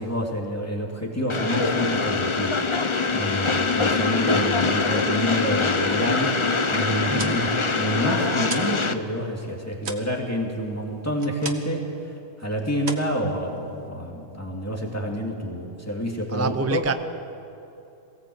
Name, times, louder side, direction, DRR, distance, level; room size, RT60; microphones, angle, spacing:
voice 1, 0.0-2.6 3.1-6.4 6.7-11.9 12.4-16.8, equal, 10° left, -1 dB, 2.9 m, -28 dB
Train, 1.3-8.9, left 4 dB, 30° left, 0.7 m, -23 dB
sound 1, 7.1-8.8 9.1-11.9 12.2-12.5 12.8-13.9, right 4 dB, 55° right, 1.6 m, -37 dB
voice 2, 16.3-16.9, right 3 dB, 20° right, 8 dB, 0.5 m, -26 dB
22.5 x 17.0 x 8.1 m, 2.8 s
omnidirectional pair, 1.3 m